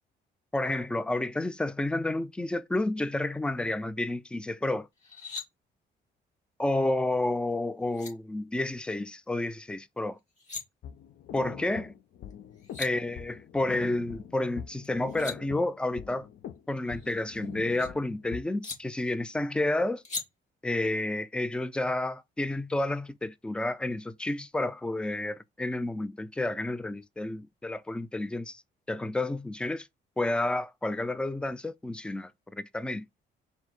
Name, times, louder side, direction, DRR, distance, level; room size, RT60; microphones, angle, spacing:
voice 1, 0.5-4.9 6.6-10.2 11.3-11.9 12.8-16.3 16.7-20.0 20.6-28.6 28.9-29.9 30.2-33.1, left 2 dB, 5° left, 0.3 m, -30 dB
sound 1, 5.0-5.5 7.5-7.6 7.9-8.1 10.2-10.6 12.3-12.4 12.6-12.9 14.8-15.4 16.9-17.9 18.6-18.8 20.0-20.2, left 4 dB, 35° left, 1.7 m, -39 dB
sound 2, 10.8-18.4, left 9 dB, 65° left, 0.5 m, -44 dB
4.4 x 2.0 x 4.2 m
cardioid pair, 90°, 20 cm